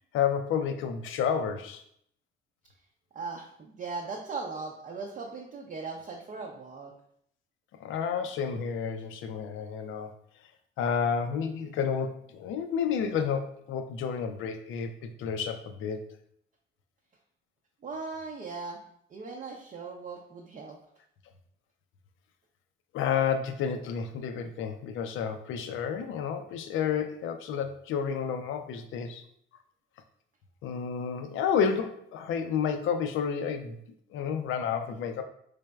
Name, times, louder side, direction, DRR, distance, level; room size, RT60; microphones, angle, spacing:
voice 1, 0.1-1.8 7.8-10.1 10.8-16.1 22.9-29.2 30.6-33.8 34.1-35.2, left 7 dB, 80° left, 7 dB, 0.4 m, -30 dB
voice 2, 3.1-6.9 17.8-18.8 19.1-20.8, right 4 dB, 40° right, -1 dB, 0.5 m, -38 dB
4.0 x 3.2 x 2.2 m, 0.68 s
cardioid pair, 90°, 20 cm